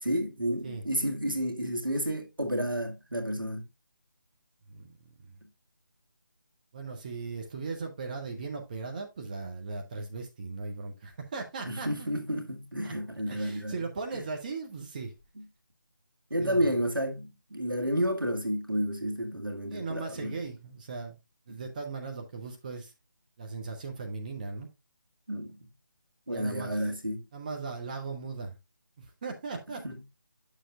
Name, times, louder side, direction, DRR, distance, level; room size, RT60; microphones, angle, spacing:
voice 1, 0.0-3.7 11.7-13.7 14.1-14.3 16.3-20.4 25.3-25.6 26.3-27.3 29.8-30.0, equal, 80° right, 1.8 m, -31 dB
voice 2, 6.7-12.1 12.8-12.9 13.3-15.1 16.4-16.7 19.7-21.2 21.5-22.9 23.4-24.7 26.3-26.9 27.3-28.6 29.0-29.8, right 4 dB, 25° right, 0.8 m, -38 dB
8.9 x 6.6 x 2.4 m
figure-of-eight pair, 155°, 11 cm